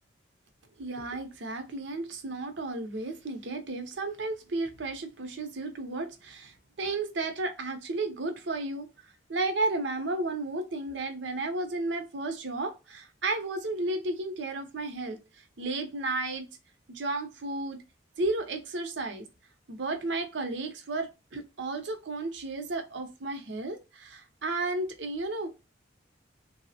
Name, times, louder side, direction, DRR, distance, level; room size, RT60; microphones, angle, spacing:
voice 1, 0.8-8.9 9.3-15.2 15.6-16.4 16.9-17.8 18.2-19.3 19.7-25.5, right 2 dB, 70° right, 0.7 m, -33 dB
3.3 x 2.0 x 2.7 m
head